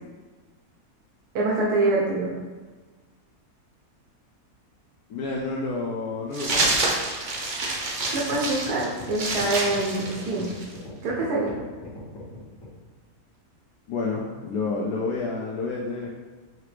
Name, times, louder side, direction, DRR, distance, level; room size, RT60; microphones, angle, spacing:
voice 1, 1.3-2.3 8.1-10.5 11.0-11.5, right 2 dB, 80° right, -4 dB, 1.2 m, -25 dB
voice 2, 5.1-6.9 13.9-16.1, left 3 dB, 80° left, -2 dB, 1.1 m, -29 dB
sound 1, 6.3-10.8, right 2 dB, 55° right, 0.5 m, -27 dB
sound 2, 8.2-12.8, left 2 dB, 55° left, 1.7 m, -40 dB
4.9 x 2.9 x 3.2 m, 1.3 s
omnidirectional pair, 1.7 m